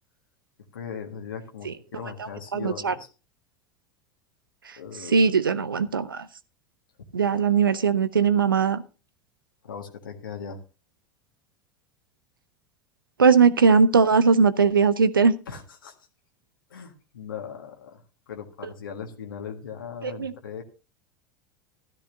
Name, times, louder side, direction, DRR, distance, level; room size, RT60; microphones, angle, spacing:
voice 1, 0.7-3.1 4.8-5.3 9.6-10.6 15.5-15.9 16.7-18.0 18.3-20.6, left 7 dB, 80° left, 2 dB, 1.7 m, -38 dB
voice 2, 2.5-2.9 4.7-4.8 5.1-6.3 7.1-8.8 13.2-15.3 20.0-20.3, right 5 dB, 85° right, 14 dB, 0.8 m, -20 dB
13.0 x 13.0 x 2.7 m, 0.33 s
figure-of-eight pair, 80°, 11 cm